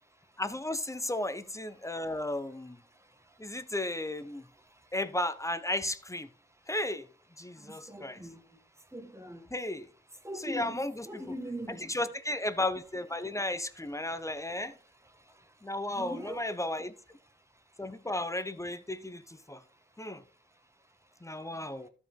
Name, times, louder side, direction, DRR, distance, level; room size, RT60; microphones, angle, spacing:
voice 1, 0.4-2.8 3.4-4.4 4.9-6.3 6.7-7.1 7.4-8.2 9.5-9.9 10.4-11.2 11.9-14.8 15.6-16.9 17.8-19.6 20.0-20.2 21.2-21.9, left 1 dB, 15° left, 0.8 m, -34 dB
voice 2, 7.7-8.4 8.9-9.4 10.2-10.8 11.0-11.9 15.9-16.4, equal, 15° right, 1.6 m, -40 dB
13.5 x 5.2 x 3.6 m
cardioid pair, 65°, 20 cm